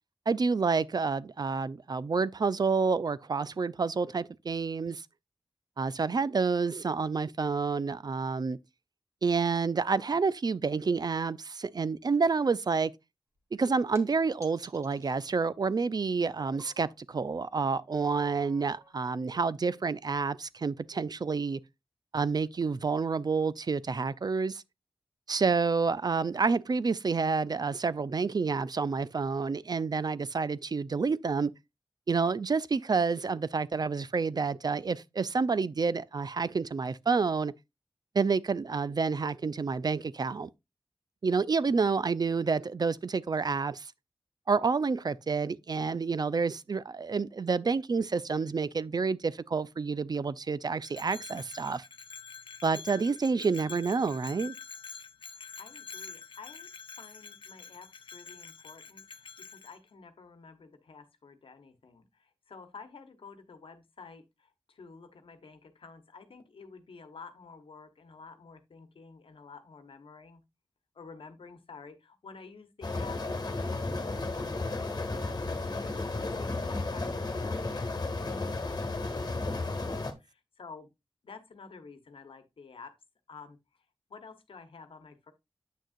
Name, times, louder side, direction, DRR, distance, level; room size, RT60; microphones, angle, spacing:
voice 1, 0.3-5.0 5.8-8.6 9.2-12.9 13.5-21.6 22.1-24.6 25.3-31.5 32.1-37.5 38.1-40.5 41.2-43.9 44.5-51.8 52.6-54.5, right 4 dB, 50° right, 0.4 m, -29 dB
sound 1, 13.4-13.5 13.9-14.1 14.4-15.1 16.4-16.9 18.0-19.1 20.1-20.2 21.0-21.1, right 1 dB, 30° right, 1.6 m, -53 dB
Bell, 50.8-59.8, left 5 dB, 65° left, 0.6 m, -47 dB
voice 2, 55.3-56.7 56.9-70.4 70.9-80.9 81.2-82.9 83.3-83.8 84.1-85.3, left 4 dB, 85° left, 1.1 m, -51 dB
sound 2, 72.8-80.1, left 3 dB, 50° left, 1.3 m, -33 dB
8.3 x 6.3 x 2.5 m
cardioid pair, 50°, 9 cm